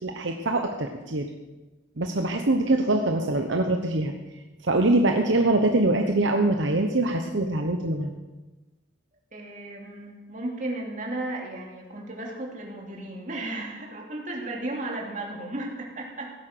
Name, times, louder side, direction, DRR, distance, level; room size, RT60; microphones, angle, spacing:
voice 1, 0.0-1.3 2.0-4.1 4.6-8.1, right 2 dB, 70° right, 4 dB, 1.0 m, -23 dB
voice 2, 9.3-16.3, right 2 dB, 40° right, 0 dB, 3.0 m, -34 dB
16.5 x 9.9 x 6.8 m, 1.1 s
head